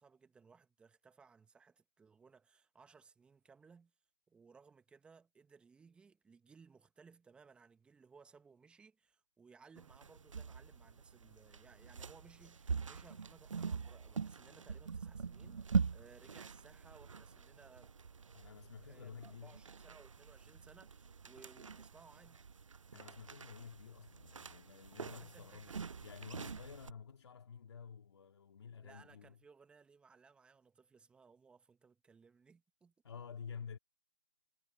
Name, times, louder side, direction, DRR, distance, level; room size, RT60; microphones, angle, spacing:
voice 1, 0.0-3.9 4.3-17.9 18.8-22.4 25.2-25.8 28.8-32.9, right 5 dB, 5° right, 1.4 m, -62 dB
sound 1, 9.8-26.9, right 5 dB, 85° right, 0.6 m, -43 dB
voice 2, 18.3-19.6 22.9-29.4 33.0-33.8, left 6 dB, 60° left, 2.7 m, -51 dB
figure-of-eight pair, 145°, 16 cm